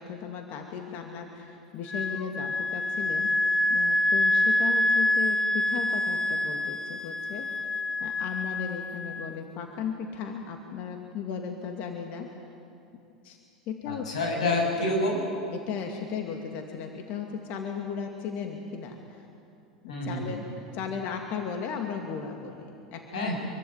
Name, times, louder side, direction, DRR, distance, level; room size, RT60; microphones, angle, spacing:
voice 1, 0.0-3.4 3.7-12.3 13.2-13.4 13.7-14.0 15.5-19.3 19.8-20.4 20.7-23.3, left 6 dB, 50° left, 3 dB, 2.5 m, -36 dB
Wind instrument woodwind instrument, 1.9-9.3, left 1 dB, 20° left, 1.1 m, -26 dB
voice 2, 13.9-15.2 19.9-20.4 23.1-23.3, left 2 dB, 75° left, 0 dB, 7.7 m, -28 dB
25.5 x 23.5 x 9.4 m, 2.7 s
hypercardioid pair, 80°, 4 cm